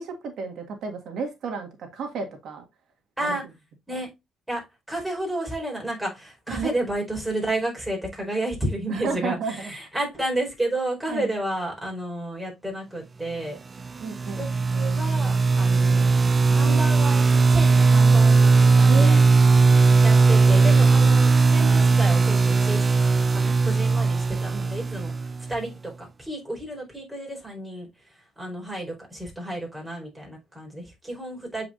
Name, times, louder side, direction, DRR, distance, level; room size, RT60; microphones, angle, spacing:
voice 1, 0.0-2.6 3.2-3.4 6.5-6.7 8.9-9.7 11.1-11.3 14.0-14.5 18.9-19.4 24.3-24.7, right 5 dB, 75° right, 1.7 m, -32 dB
voice 2, 4.5-13.6 14.3-16.1 16.5-19.2 20.0-22.8 23.3-27.9 28.4-31.6, right 1 dB, 10° right, 4.4 m, -31 dB
sound 1, 13.8-25.6, right 4 dB, 35° right, 0.3 m, -18 dB
8.0 x 4.8 x 2.5 m
cardioid pair, 90°, 0 cm